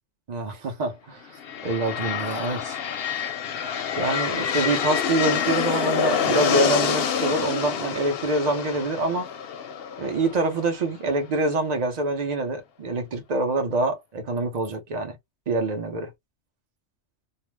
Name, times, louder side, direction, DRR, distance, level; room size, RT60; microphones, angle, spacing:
voice 1, 0.3-1.3 1.6-2.8 4.0-9.3 10.0-15.2 15.5-16.1, right 2 dB, 40° right, 0.7 m, -26 dB
sound 1, 1.3-11.2, left 8 dB, 60° left, 0.7 m, -27 dB
2.4 x 2.0 x 3.2 m
omnidirectional pair, 1.2 m